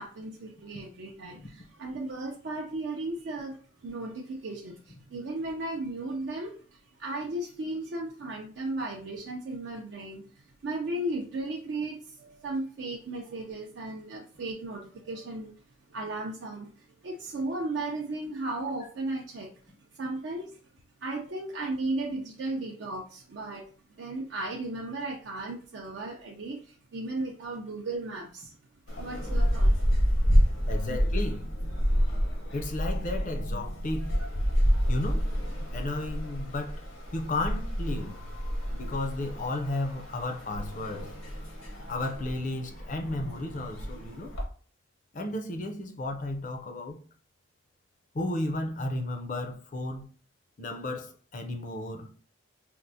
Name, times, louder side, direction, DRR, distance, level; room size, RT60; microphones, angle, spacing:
voice 1, 0.0-3.6 3.8-15.5 15.9-19.5 20.0-20.5 21.0-23.6 24.0-28.5 29.0-29.7 30.9-31.0, right 2 dB, 60° right, 0.4 m, -35 dB
sound 1, 28.9-44.4, equal, 85° left, 1.0 m, -29 dB
voice 2, 30.7-31.5 32.5-34.1 34.9-35.3 35.7-36.8 37.1-38.3 38.7-41.1 41.9-44.3 45.1-47.0 48.1-50.1 50.6-52.1, left 2 dB, 40° left, 0.4 m, -33 dB
4.3 x 2.0 x 2.6 m
head